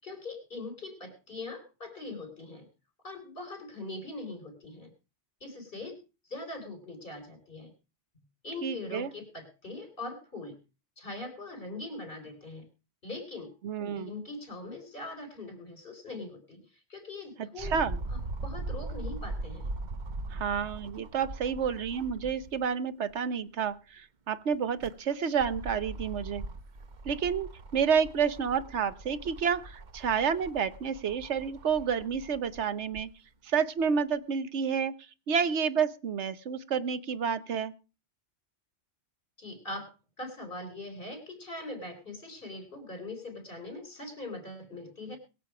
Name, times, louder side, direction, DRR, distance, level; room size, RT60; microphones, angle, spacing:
voice 1, 0.0-2.7 3.0-4.9 5.4-6.0 6.3-7.7 8.4-10.6 11.0-12.7 13.0-13.5 13.9-17.8 18.4-19.7 39.4-45.2, left 2 dB, 50° left, 7 dB, 4.4 m, -41 dB
voice 2, 8.6-9.1 13.6-14.1 17.6-18.0 20.3-26.4 27.0-33.1 33.4-34.9 35.3-37.7, right 7 dB, 70° right, 13 dB, 1.3 m, -30 dB
sound 1, 17.6-22.6 23.1-23.2 24.5-33.1 33.8-33.9, right 2 dB, 45° right, 1.0 m, -40 dB
21.5 x 7.5 x 4.9 m, 0.32 s
omnidirectional pair, 1.2 m